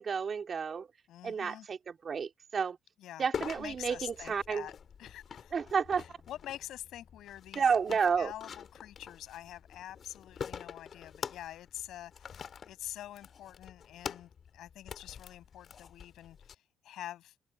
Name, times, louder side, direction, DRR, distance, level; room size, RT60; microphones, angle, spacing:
voice 1, 0.0-0.9 1.2-2.8 3.2-4.7 5.5-6.0 7.5-8.3, right 6 dB, 45° right, 3.3 m, -31 dB
voice 2, 1.1-1.7 3.0-4.7 5.0-5.6 6.0-17.4, left 12 dB, 80° left, 7.9 m, -46 dB
sound 1, 3.3-16.5, left 7 dB, 55° left, 2.7 m, -46 dB
cardioid pair, 90°, 0 cm